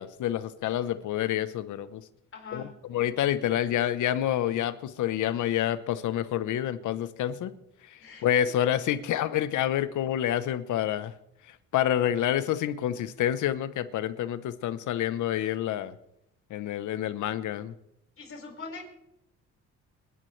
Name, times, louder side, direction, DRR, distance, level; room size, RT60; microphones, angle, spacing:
voice 1, 0.0-2.0 2.5-7.5 7.9-11.1 11.5-16.0 16.5-17.7, left 11 dB, 80° left, 14 dB, 1.0 m, -28 dB
voice 2, 2.3-2.7 8.0-8.3 18.2-18.9, left 4 dB, 45° left, 0 dB, 5.0 m, -42 dB
30.0 x 11.0 x 3.3 m, 0.80 s
cardioid pair, 90°, 30 cm